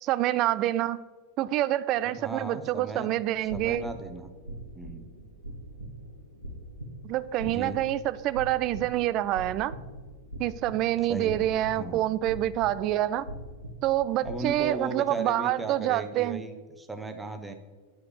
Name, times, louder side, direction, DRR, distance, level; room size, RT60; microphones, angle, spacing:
voice 1, 0.0-1.0 1.4-3.9 7.0-9.8 10.4-13.3 13.8-16.4, right 14 dB, 40° right, 16 dB, 0.3 m, -27 dB
voice 2, 2.0-3.1 3.4-4.3 4.7-5.1 7.4-7.8 11.1-11.4 11.7-12.0 14.2-17.5, right 2 dB, 10° right, 7 dB, 0.9 m, -37 dB
sound 1, 3.2-14.4, right 1 dB, 85° right, 1.3 m, -42 dB
8.6 x 4.7 x 6.8 m, 1.4 s
figure-of-eight pair, 90°, 0 cm